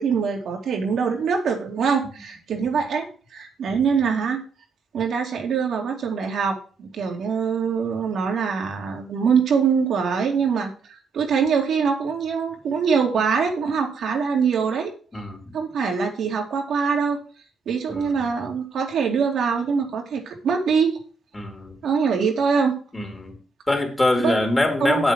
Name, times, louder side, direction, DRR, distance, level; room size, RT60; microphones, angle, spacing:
voice 1, 0.0-4.4 4.9-14.9 15.5-17.2 17.7-21.0 21.8-22.7 24.2-24.3 24.8-25.0, right 6 dB, 70° right, 2 dB, 2.6 m, -23 dB
voice 2, 15.1-15.5 17.9-18.2 21.3-21.8 22.9-23.4 23.7-25.1, left 2 dB, 20° left, 4 dB, 3.9 m, -24 dB
8.0 x 7.3 x 6.3 m, 0.38 s
supercardioid pair, 55°, 0 cm